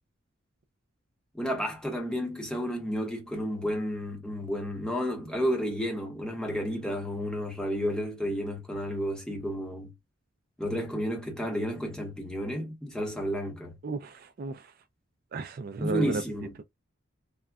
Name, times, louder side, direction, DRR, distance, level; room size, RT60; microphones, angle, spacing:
voice 1, 1.3-9.9 10.6-13.8 15.8-16.5, equal, 5° left, 0.8 m, -31 dB
voice 2, 13.8-14.6 15.3-16.2, right 3 dB, 45° right, 0.3 m, -33 dB
3.6 x 2.1 x 2.3 m
head